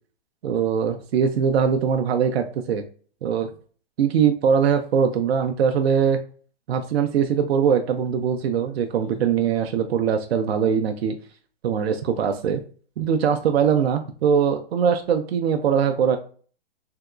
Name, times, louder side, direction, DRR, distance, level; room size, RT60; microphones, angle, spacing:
voice 1, 0.4-2.8 3.2-3.5 4.0-6.2 6.7-11.2 11.6-12.6 13.0-16.2, right 7 dB, 75° right, 6 dB, 0.5 m, -21 dB
3.5 x 2.8 x 2.3 m, 0.42 s
hypercardioid pair, 175°, 31 cm